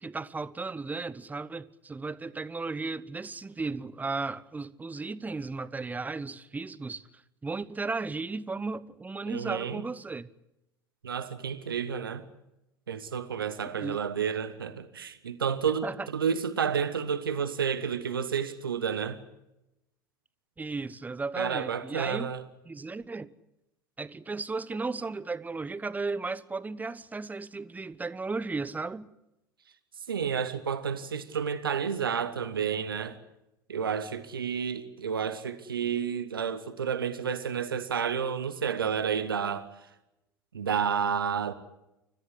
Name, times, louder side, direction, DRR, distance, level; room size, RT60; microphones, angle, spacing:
voice 1, 0.0-7.1 7.4-10.3 13.7-14.0 15.8-16.1 20.6-22.3 22.7-23.3 24.0-29.1, right 3 dB, 15° right, 1.0 m, -35 dB
voice 2, 9.3-9.8 11.0-12.2 12.9-19.2 21.4-22.4 30.1-33.2 33.7-39.7 40.5-41.5, right 7 dB, 80° right, 1.3 m, -30 dB
29.5 x 14.5 x 9.7 m
figure-of-eight pair, 75°, 12 cm